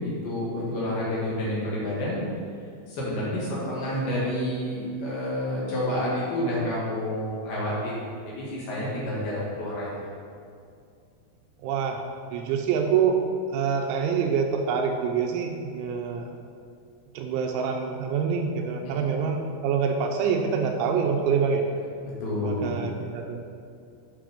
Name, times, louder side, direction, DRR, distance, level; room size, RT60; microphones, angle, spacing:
voice 1, 0.0-2.2 2.9-9.9 18.8-19.1 22.2-22.8, left 1 dB, 60° left, -7 dB, 3.3 m, -29 dB
voice 2, 11.6-12.0 12.3-13.2 13.5-16.4 17.1-21.7 22.4-23.4, right 6 dB, 80° right, 2 dB, 3.1 m, -26 dB
9.2 x 5.6 x 5.1 m, 2.4 s
omnidirectional pair, 5.6 m